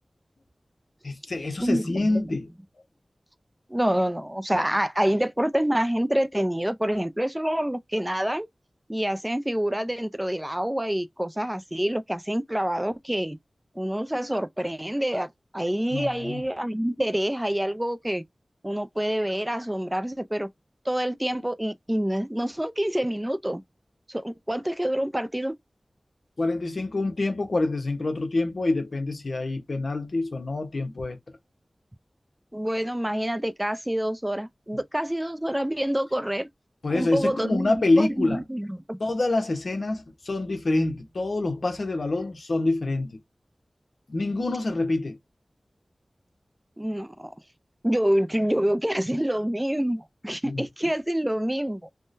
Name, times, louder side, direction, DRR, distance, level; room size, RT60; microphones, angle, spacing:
voice 1, 1.0-2.5 15.9-16.4 26.4-31.2 36.8-38.4 39.0-43.2 44.1-45.2 50.4-50.6, left 2 dB, 70° left, 0.8 m, -26 dB
voice 2, 1.6-2.1 3.7-8.5 8.9-13.4 13.8-18.2 18.6-20.5 20.9-23.6 24.1-25.6 32.5-36.5 36.9-39.0 46.8-47.3 47.8-51.8, equal, 15° right, 0.3 m, -27 dB
3.6 x 2.1 x 2.5 m
wide cardioid pair, 55°, 0 cm